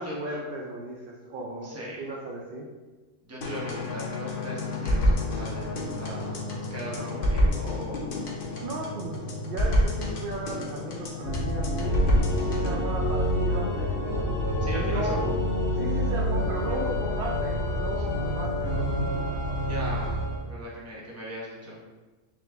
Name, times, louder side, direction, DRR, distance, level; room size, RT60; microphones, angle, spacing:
voice 1, 0.0-2.7 8.6-14.0 14.7-15.2 15.8-18.7, right 2 dB, 70° right, -2 dB, 0.5 m, -36 dB
voice 2, 1.6-2.1 3.2-8.1 14.6-15.3 18.0-18.1 19.6-21.8, equal, 15° right, -5 dB, 0.7 m, -39 dB
sound 1, 3.4-12.8, left 1 dB, 50° left, 0.7 m, -28 dB
Organ, 11.2-20.4, left 1 dB, 15° left, 0.8 m, -27 dB
3.8 x 3.0 x 3.3 m, 1.3 s
omnidirectional pair, 1.4 m